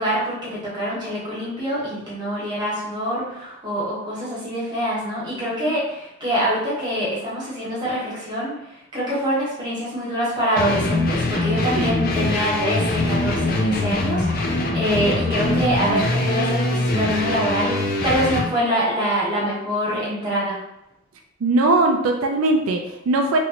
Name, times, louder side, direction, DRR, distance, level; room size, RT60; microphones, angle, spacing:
voice 1, 0.0-20.6, equal, 20° right, -7 dB, 1.2 m, -25 dB
sound 1, 10.6-18.5, left 2 dB, 45° left, 0.4 m, -23 dB
voice 2, 21.4-23.4, right 2 dB, 90° right, 3 dB, 0.4 m, -20 dB
3.0 x 2.6 x 2.8 m, 0.86 s
head